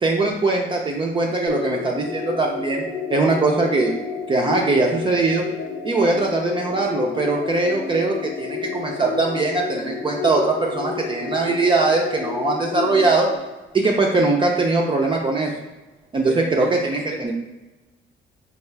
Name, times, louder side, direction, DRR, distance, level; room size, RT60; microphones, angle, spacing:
voice 1, 0.0-2.8 3.1-4.0 4.3-5.4 5.8-13.3 13.7-15.5 16.1-17.3, right 3 dB, 25° right, -1 dB, 0.4 m, -21 dB
sound 1, 1.5-13.4, left 6 dB, 55° left, 0.7 m, -30 dB
voice 2, 16.2-16.7 17.1-17.3, right 6 dB, 75° right, 3 dB, 0.6 m, -34 dB
4.4 x 2.4 x 3.2 m, 1.1 s
cardioid pair, 90°, 20 cm